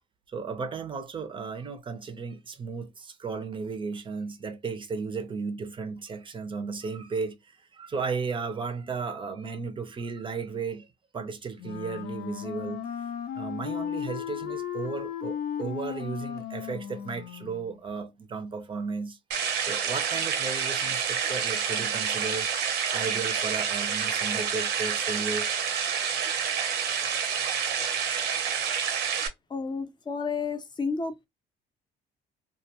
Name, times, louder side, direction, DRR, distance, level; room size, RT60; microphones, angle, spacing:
voice 1, 0.3-10.9 11.1-12.8 13.3-19.2 19.7-22.5 22.9-25.5, right 4 dB, 30° right, 0.5 m, -34 dB
Wind instrument woodwind instrument, 11.6-17.8, left 9 dB, 65° left, 0.5 m, -35 dB
sound 1, 19.3-29.3, right 7 dB, 85° right, 0.6 m, -28 dB
voice 2, 29.5-31.3, left 4 dB, 25° left, 0.6 m, -31 dB
2.2 x 2.2 x 2.8 m
cardioid pair, 110°, 17 cm